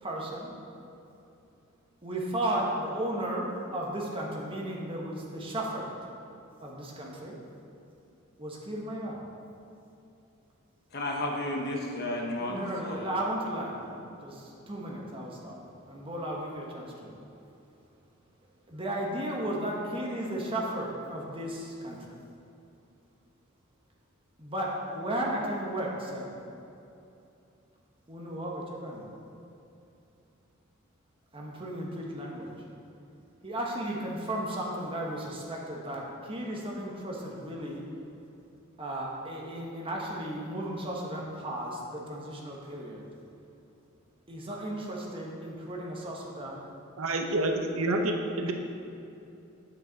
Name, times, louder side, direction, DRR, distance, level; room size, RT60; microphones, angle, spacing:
voice 1, 0.0-0.5 2.0-5.9 6.6-7.4 8.4-9.2 12.4-13.8 14.2-15.6 15.9-17.1 18.7-22.1 24.4-26.3 28.1-29.1 31.3-32.5 33.4-37.9 38.8-43.0 44.3-46.6, right 1 dB, 25° right, -2 dB, 1.2 m, -34 dB
voice 2, 10.9-13.1, left 1 dB, 50° left, 0 dB, 1.1 m, -32 dB
voice 3, 47.0-48.5, right 2 dB, 80° right, 4 dB, 0.8 m, -28 dB
8.7 x 7.4 x 4.1 m, 2.7 s
head